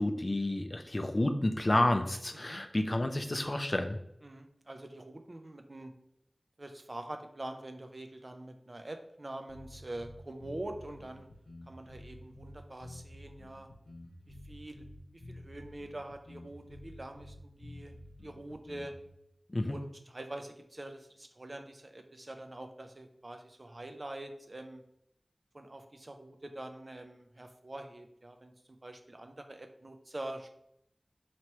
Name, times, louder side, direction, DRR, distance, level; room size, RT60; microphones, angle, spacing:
voice 1, 0.0-4.0 19.5-19.8, left 1 dB, 40° left, 7 dB, 0.4 m, -30 dB
voice 2, 4.2-5.9 6.6-11.3 11.7-13.7 14.5-14.9 15.1-17.9 18.2-18.9 19.7-24.8 25.5-28.5 28.8-30.5, right 1 dB, 50° right, 6 dB, 0.4 m, -45 dB
sound 1, 9.5-19.1, left 1 dB, 85° left, 0.9 m, -50 dB
3.0 x 2.9 x 4.5 m, 0.76 s
wide cardioid pair, 55°, 0 cm